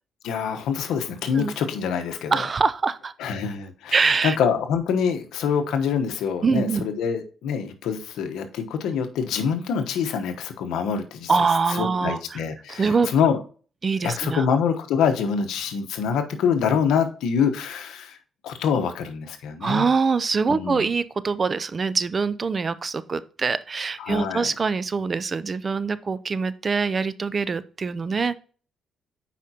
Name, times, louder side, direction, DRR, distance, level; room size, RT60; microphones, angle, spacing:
voice 1, 0.2-2.4 3.2-11.3 11.7-13.4 14.0-18.2 18.4-19.9 20.5-20.9 24.0-24.5, left 7 dB, 85° left, 7 dB, 1.0 m, -25 dB
voice 2, 2.3-3.1 3.9-4.4 6.4-6.8 11.3-12.4 12.7-13.1 13.8-14.4 19.6-28.4, right 4 dB, 35° right, 16 dB, 0.5 m, -24 dB
8.4 x 5.1 x 2.8 m, 0.39 s
cardioid pair, 90°, 0 cm